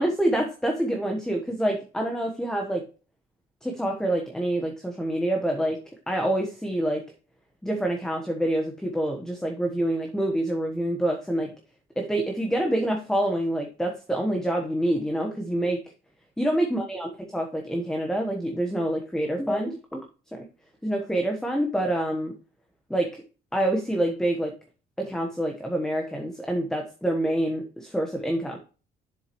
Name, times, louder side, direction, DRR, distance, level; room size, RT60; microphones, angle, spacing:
voice 1, 0.0-2.8 3.6-5.8 6.1-7.0 7.6-11.5 12.0-15.8 16.4-20.0 20.3-20.4 20.8-22.3 22.9-23.2 23.5-24.5 25.0-28.6, right 1 dB, 5° left, 3 dB, 1.1 m, -26 dB
7.4 x 7.3 x 3.0 m, 0.36 s
cardioid pair, 110°, 17 cm